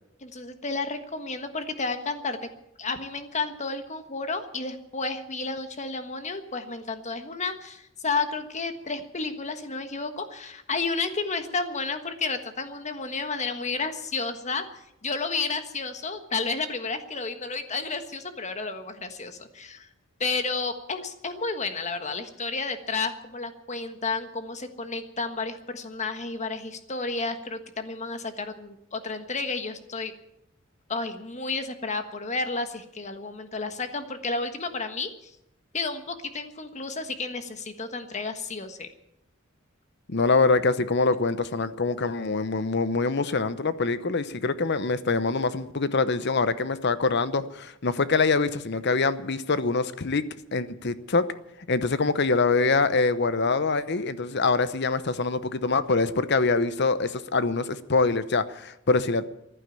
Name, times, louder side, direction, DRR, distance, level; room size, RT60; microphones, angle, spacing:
voice 1, 0.2-2.4 2.8-19.9 20.2-30.1 30.9-35.3 35.7-38.9, left 4 dB, 35° left, 8 dB, 1.4 m, -31 dB
voice 2, 40.1-50.2 50.5-51.2 51.7-59.2, left 3 dB, 55° left, 14 dB, 0.9 m, -24 dB
15.0 x 11.5 x 8.4 m, 0.81 s
head